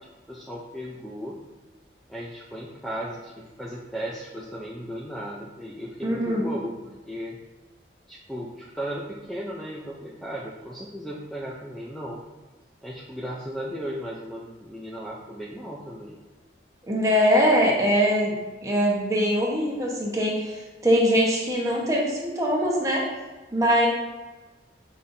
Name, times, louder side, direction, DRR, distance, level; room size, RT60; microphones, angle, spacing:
voice 1, 0.3-1.3 2.1-7.4 8.1-12.2 12.8-16.2, equal, ahead, -5 dB, 0.6 m, -36 dB
voice 2, 6.0-6.5 16.9-18.3 18.6-23.1 23.5-23.9, equal, 15° right, -3 dB, 1.2 m, -22 dB
7.5 x 5.1 x 2.7 m, 1.2 s
head